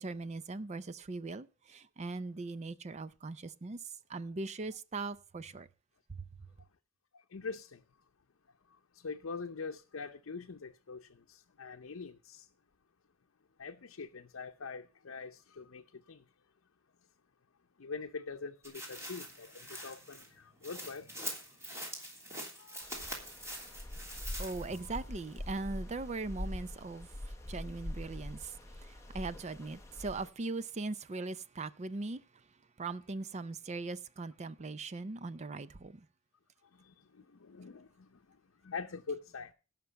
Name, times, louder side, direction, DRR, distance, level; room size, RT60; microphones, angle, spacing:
voice 1, 0.0-3.8 4.1-5.7 24.4-32.2 32.8-36.0, right 3 dB, 35° right, 0.5 m, -40 dB
voice 2, 7.3-7.8 9.0-12.5 13.6-15.8 16.1-16.2 17.8-21.1 22.6-22.9 24.7-25.0 36.8-38.1 38.6-39.5, left 4 dB, 80° left, 0.7 m, -44 dB
sound 1, 18.6-25.0 25.4-25.5, right 1 dB, 15° right, 3.1 m, -44 dB
sound 2, 22.8-30.3, left 1 dB, 15° left, 0.7 m, -44 dB
16.5 x 5.9 x 5.6 m
head